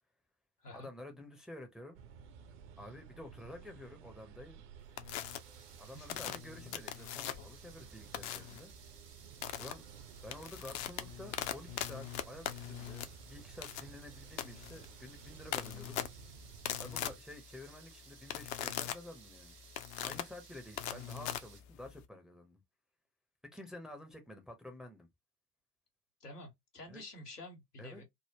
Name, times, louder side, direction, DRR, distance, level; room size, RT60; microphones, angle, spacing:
voice 1, 0.7-2.0 2.8-4.6 5.8-8.7 9.6-9.8 10.2-16.0 16.8-19.6 20.0-22.6 23.4-25.1 26.9-27.0 27.8-28.0, left 1 dB, ahead, 0.6 m, -50 dB
sound 1, 1.9-17.2, right 7 dB, 50° right, 0.7 m, -55 dB
sound 2, 5.0-5.4 6.1-7.6 8.1-8.6 9.4-9.7 10.2-22.1, left 11 dB, 50° left, 0.6 m, -41 dB
sound 3, 5.3-21.6, right 6 dB, 85° right, 0.7 m, -59 dB
voice 2, 5.8-6.2 26.2-28.0, left 1 dB, 85° left, 1.4 m, -50 dB
3.5 x 2.0 x 2.8 m
figure-of-eight pair, 75°, 46 cm